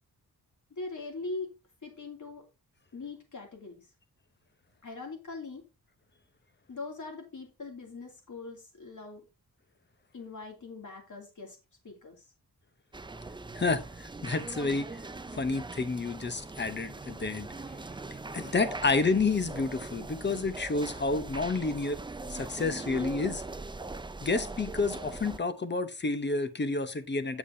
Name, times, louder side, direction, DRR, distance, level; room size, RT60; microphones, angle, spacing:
voice 1, 0.7-1.5 1.8-2.4 2.9-3.9 4.8-5.6 6.7-9.2 10.1-11.6 11.8-12.3, left 3 dB, 50° left, 2.6 m, -41 dB
sound 1, 12.9-25.4, right 3 dB, 15° right, 0.4 m, -41 dB
voice 2, 13.5-14.9 15.3-17.5 18.3-22.0 22.3-23.4 24.2-27.4, left 3 dB, 30° left, 0.8 m, -30 dB
8.6 x 7.1 x 2.7 m
wide cardioid pair, 135°, 38 cm